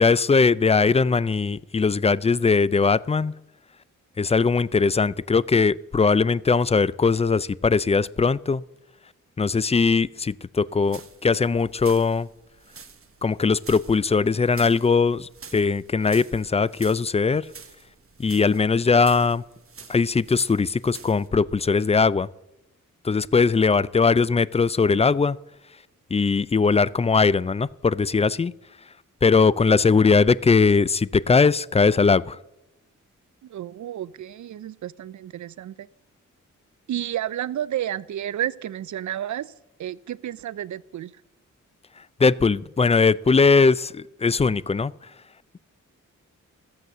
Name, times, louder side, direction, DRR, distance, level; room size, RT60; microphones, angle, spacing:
voice 1, 0.0-3.3 4.2-8.6 9.4-12.3 13.2-17.5 18.2-19.4 19.9-22.3 23.0-25.4 26.1-28.5 29.2-32.4 42.2-44.9, left 4 dB, 20° left, 21 dB, 0.4 m, -20 dB
sound 1, 10.7-21.3, right 5 dB, 45° right, 1.3 m, -47 dB
voice 2, 33.4-35.9 36.9-39.5 39.8-41.1, right 11 dB, 65° right, 20 dB, 0.5 m, -31 dB
13.5 x 7.8 x 6.6 m, 0.92 s
cardioid pair, 50°, 31 cm